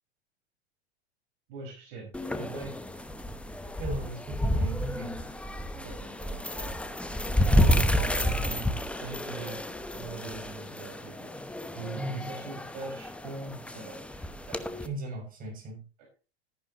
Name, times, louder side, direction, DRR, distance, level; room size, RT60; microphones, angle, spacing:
voice 1, 1.5-2.1 2.4-2.7 5.8-6.7 7.5-8.7 9.0-9.7 10.0-11.3 11.7-14.6, right 4 dB, 50° right, 5.2 m, -42 dB
sound 1, 2.1-14.9, left 1 dB, 5° left, 0.9 m, -30 dB
voice 2, 3.8-5.1 11.9-12.3 14.8-15.8, right 1 dB, 25° right, 6.6 m, -37 dB
13.5 x 10.5 x 2.9 m
figure-of-eight pair, 95°, 33 cm